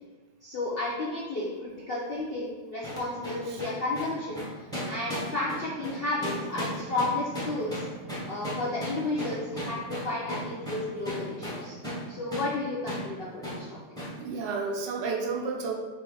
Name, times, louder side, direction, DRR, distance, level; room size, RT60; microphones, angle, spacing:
voice 1, 0.4-4.4 4.8-7.8 8.3-11.7 12.1-13.8, left 2 dB, 70° left, -6 dB, 0.5 m, -32 dB
sound 1, 2.8-12.1 12.3-12.5 12.9-13.1 13.4-13.6 14.0-14.2, equal, 5° left, 0.8 m, -35 dB
voice 2, 14.2-15.7, right 4 dB, 85° right, 1 dB, 1.4 m, -31 dB
4.1 x 3.2 x 3.9 m, 1.3 s
omnidirectional pair, 1.9 m